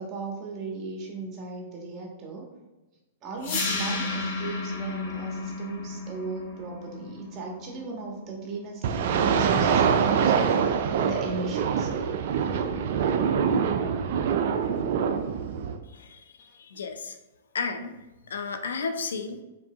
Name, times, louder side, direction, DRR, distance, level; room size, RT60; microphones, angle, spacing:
voice 1, 0.0-2.5 3.2-11.9, right 3 dB, 30° right, -1 dB, 1.2 m, -37 dB
sound 1, 3.4-9.4, left 3 dB, 50° left, 1.0 m, -33 dB
sound 2, 8.8-15.8, right 7 dB, 55° right, 0.3 m, -24 dB
voice 2, 15.9-17.2 17.5-18.0 18.3-19.4, left 4 dB, 75° left, 7 dB, 0.4 m, -33 dB
4.6 x 3.7 x 2.4 m, 1.1 s
hypercardioid pair, 110°, 0 cm